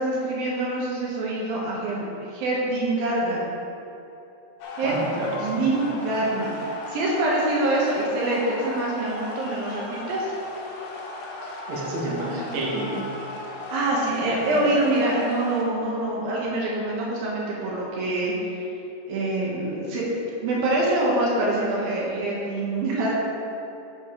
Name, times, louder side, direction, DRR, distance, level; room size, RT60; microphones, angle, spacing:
voice 1, 0.0-2.1 2.3-3.4 4.7-4.9 5.4-6.5 6.9-10.4 13.7-18.3 19.1-20.1 20.4-23.1, right 2 dB, 70° right, -4 dB, 2.3 m, -25 dB
sound 1, 4.6-15.6, left 2 dB, 70° left, 2.5 m, -36 dB
voice 2, 4.8-5.7 11.4-13.1 14.2-14.7, right 2 dB, 90° right, -4 dB, 1.5 m, -30 dB
9.8 x 7.6 x 3.8 m, 2.9 s
omnidirectional pair, 5.6 m